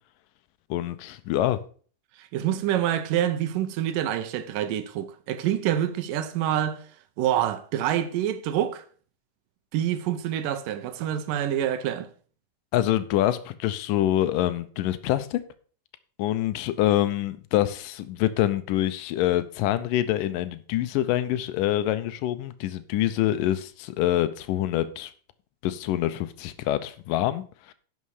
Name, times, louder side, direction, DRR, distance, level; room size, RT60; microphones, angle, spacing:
voice 1, 0.7-1.6 12.7-15.4 16.2-25.1 25.6-27.7, left 13 dB, 80° left, 2.3 m, -25 dB
voice 2, 2.2-6.8 7.2-8.8 9.7-12.1, right 11 dB, 80° right, 2.5 m, -26 dB
11.0 x 6.6 x 4.9 m
omnidirectional pair, 3.9 m